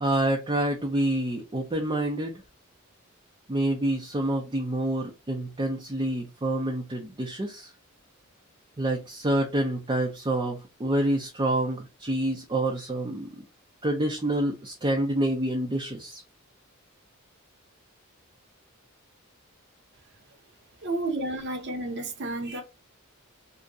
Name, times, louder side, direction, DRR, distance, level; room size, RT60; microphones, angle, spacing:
voice 1, 0.0-2.3 3.5-7.7 8.8-13.4 13.8-16.2, right 1 dB, 25° right, 0.5 m, -27 dB
voice 2, 20.8-22.6, right 2 dB, 55° right, 0.8 m, -31 dB
2.8 x 2.6 x 3.5 m
head